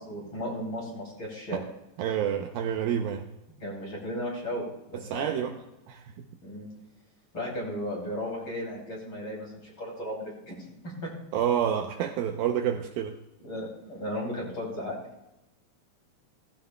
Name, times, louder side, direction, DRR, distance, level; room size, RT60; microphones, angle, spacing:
voice 1, 0.0-1.6 3.6-5.5 6.4-6.7 7.3-10.6 10.8-11.1 13.4-15.0, equal, 35° left, -3 dB, 3.1 m, -35 dB
voice 2, 2.0-3.3 5.1-5.5 5.9-6.3 11.3-13.2, right 9 dB, 80° right, 4 dB, 2.3 m, -28 dB
16.0 x 16.0 x 2.2 m, 0.93 s
omnidirectional pair, 4.6 m